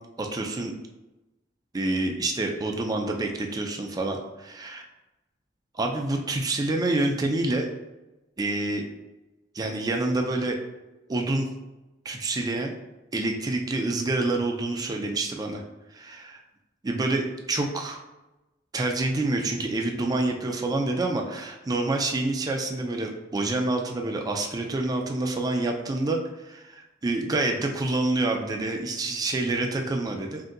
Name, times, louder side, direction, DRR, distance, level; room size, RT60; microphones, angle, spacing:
voice 1, 0.2-0.7 1.7-4.2 4.5-4.8 5.7-7.7 8.4-8.8 9.5-10.6 11.1-11.5 12.0-12.7 13.1-15.6 15.9-16.4 16.8-18.0 18.7-30.4, right 2 dB, 20° right, 2 dB, 0.3 m, -27 dB
2.7 x 2.2 x 3.6 m, 1.0 s
head